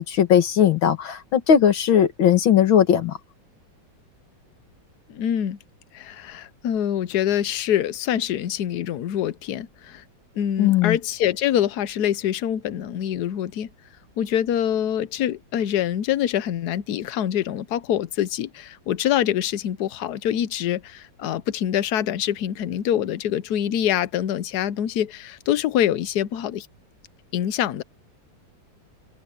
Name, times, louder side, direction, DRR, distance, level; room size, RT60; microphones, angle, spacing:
voice 1, 0.0-3.2 10.6-11.0, left 9 dB, 90° left, 2.4 m, -18 dB
voice 2, 5.1-5.6 5.9-10.0 10.4-13.7 14.2-26.7 27.3-27.8, left 10 dB, 60° left, 1.2 m, -25 dB
open air
omnidirectional pair, 2.1 m